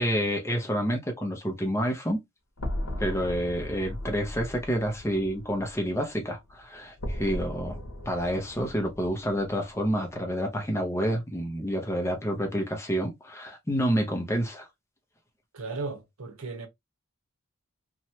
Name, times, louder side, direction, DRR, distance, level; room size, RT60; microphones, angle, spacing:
voice 1, 0.0-2.2 3.0-7.8 8.1-14.7, equal, 10° left, 0.6 m, -28 dB
sound 1, 2.6-6.6 7.0-10.3, left 1 dB, 85° left, 0.8 m, -37 dB
voice 2, 15.5-16.7, right 3 dB, 80° right, 0.9 m, -35 dB
3.0 x 2.2 x 2.7 m
head